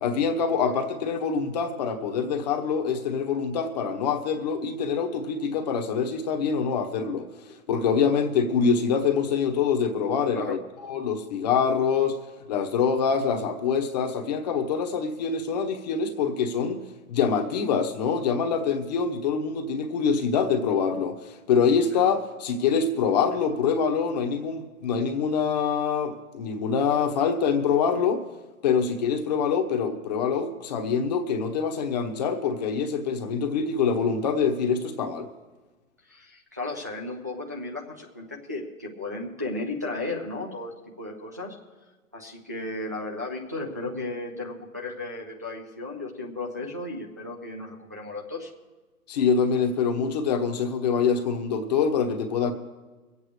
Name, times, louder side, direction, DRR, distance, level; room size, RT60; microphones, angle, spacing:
voice 1, 0.0-7.3 7.7-12.2 12.5-16.8 17.1-28.2 28.6-35.3 49.1-52.5, left 6 dB, 30° left, 5 dB, 1.1 m, -25 dB
voice 2, 36.1-41.6 42.1-48.5, left 2 dB, 15° right, -2 dB, 0.4 m, -35 dB
22.5 x 8.4 x 4.8 m, 1.3 s
hypercardioid pair, 145°, 44 cm